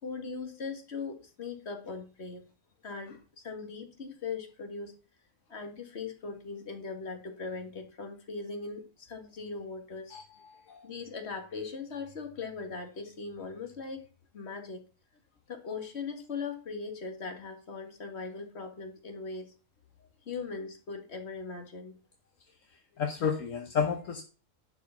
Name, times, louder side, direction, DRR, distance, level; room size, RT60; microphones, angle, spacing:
voice 1, 0.0-2.5 2.8-4.9 5.5-10.2 10.8-14.0 14.3-14.8 15.5-19.5 20.3-22.0, left 4 dB, 50° left, 5 dB, 2.0 m, -39 dB
voice 2, 23.0-24.2, left 6 dB, 70° left, 5 dB, 1.4 m, -30 dB
11.0 x 4.9 x 5.8 m, 0.36 s
omnidirectional pair, 1.4 m